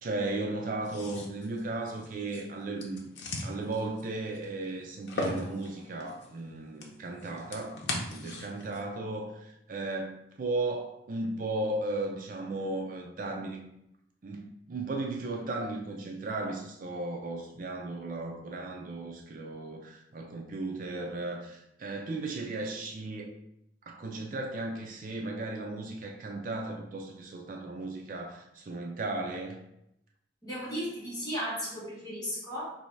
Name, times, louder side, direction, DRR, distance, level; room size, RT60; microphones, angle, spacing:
voice 1, 0.0-3.0 3.4-13.6 14.2-23.3 23.9-29.6, right 2 dB, 45° right, 1 dB, 0.4 m, -36 dB
sound 1, 0.8-8.8, left 2 dB, 80° left, 0.7 m, -40 dB
voice 2, 30.4-32.7, equal, 20° left, -7 dB, 1.4 m, -35 dB
3.0 x 2.7 x 4.5 m, 0.80 s
head